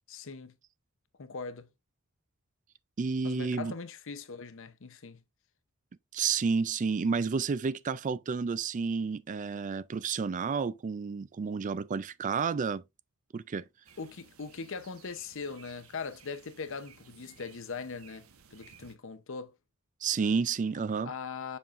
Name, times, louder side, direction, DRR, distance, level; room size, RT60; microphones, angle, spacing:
voice 1, 0.1-0.5 1.2-1.7 3.2-5.2 14.0-18.3 18.5-19.5 21.0-21.6, left 5 dB, 65° left, 0.8 m, -40 dB
voice 2, 3.0-3.7 6.1-12.8 13.3-13.7 20.0-21.1, right 5 dB, 35° right, 0.4 m, -30 dB
sound 1, 13.8-19.0, right 6 dB, 90° right, 1.0 m, -57 dB
7.0 x 5.5 x 2.5 m
head